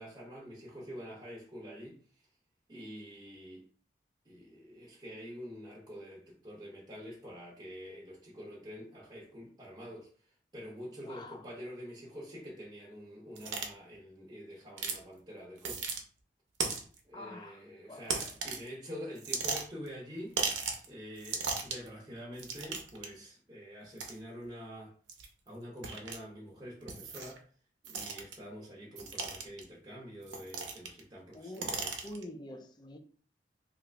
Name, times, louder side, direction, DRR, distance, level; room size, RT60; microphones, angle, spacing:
voice 1, 0.0-2.0 2.7-3.7 4.3-10.1 10.5-15.9 17.0-20.4 20.9-25.0 25.5-27.4 27.9-32.1, equal, 25° right, 0.7 m, -46 dB
voice 2, 11.0-11.4 17.1-18.2 31.3-31.7 32.0-33.0, left 1 dB, 25° left, 0.4 m, -46 dB
sound 1, 13.4-13.7 14.8-15.0 15.6-16.0 16.6-17.0 18.1-18.7 19.2-19.9 20.4-20.9 21.2-21.9 22.4-23.1 24.0-24.1 25.1-25.3 25.8-26.2 26.9-27.4 27.8-28.3 29.0-29.6 30.3-31.0 31.3-32.2, right 5 dB, 85° right, 0.7 m, -36 dB
2.8 x 2.4 x 3.2 m
head